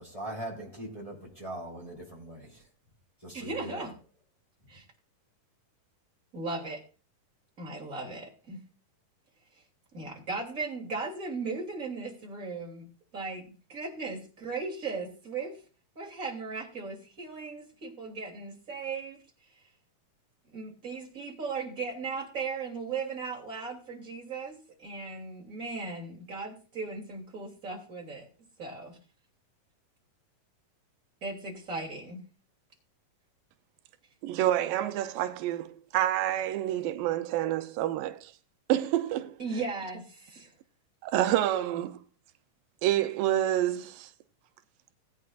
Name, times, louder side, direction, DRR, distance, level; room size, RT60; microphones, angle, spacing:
voice 1, 0.0-2.6 3.2-3.8, right 1 dB, 10° left, 3.2 m, -40 dB
voice 2, 3.3-4.0 4.7-4.8 6.3-6.8 7.6-8.6 9.9-12.9 13.1-15.6 15.9-19.2 20.5-28.3 28.6-29.0 31.2-32.2 39.4-40.5, right 4 dB, 25° right, 3.0 m, -37 dB
voice 3, 34.2-38.3 38.7-39.4 41.0-42.0 42.8-44.1, right 13 dB, 90° right, 2.4 m, -28 dB
18.5 x 9.4 x 2.5 m
omnidirectional pair, 3.9 m